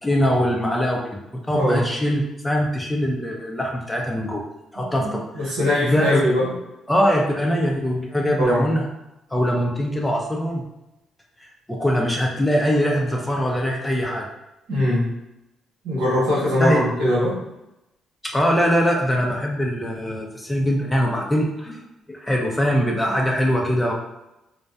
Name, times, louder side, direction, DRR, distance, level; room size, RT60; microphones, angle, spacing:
voice 1, 0.0-1.2 1.4-4.4 4.7-6.2 6.9-8.9 9.3-10.6 11.4-14.3 16.6-16.8 18.3-21.8 22.1-23.9, equal, 15° left, -1 dB, 0.4 m, -22 dB
voice 2, 1.5-1.8 4.7-5.1 5.3-6.5 8.4-8.6 14.7-15.1 15.8-17.4, left 1 dB, 85° right, -7 dB, 1.0 m, -21 dB
2.6 x 2.1 x 2.3 m, 0.93 s
supercardioid pair, 70°, 0 cm